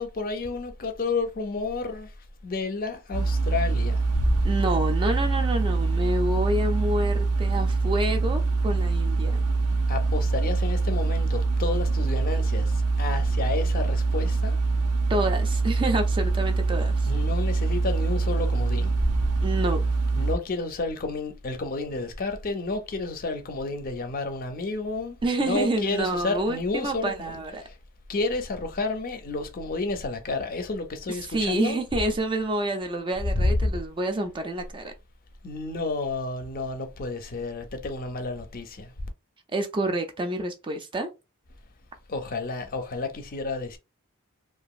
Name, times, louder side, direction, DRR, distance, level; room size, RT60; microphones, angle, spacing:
voice 1, 0.0-2.1 2.4-4.4 9.9-14.6 17.0-19.3 20.1-27.3 27.6-27.8 28.1-31.8 33.3-33.7 35.4-38.9 42.1-43.8, left 3 dB, 40° left, 0.5 m, -30 dB
sound 1, 3.1-20.4, right 3 dB, 90° right, 0.6 m, -24 dB
voice 2, 4.4-9.4 15.1-17.1 19.4-19.8 25.2-27.6 31.2-34.9 39.5-41.1, right 1 dB, 20° right, 0.4 m, -28 dB
2.9 x 2.4 x 2.3 m
head